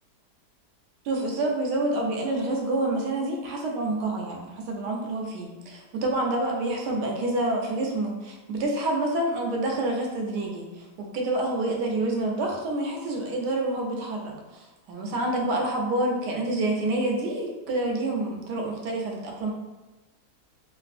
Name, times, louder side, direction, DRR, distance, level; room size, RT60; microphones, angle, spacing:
voice 1, 1.0-19.5, right 2 dB, 80° right, 0 dB, 1.2 m, -28 dB
3.3 x 2.4 x 2.5 m, 1.1 s
omnidirectional pair, 1.8 m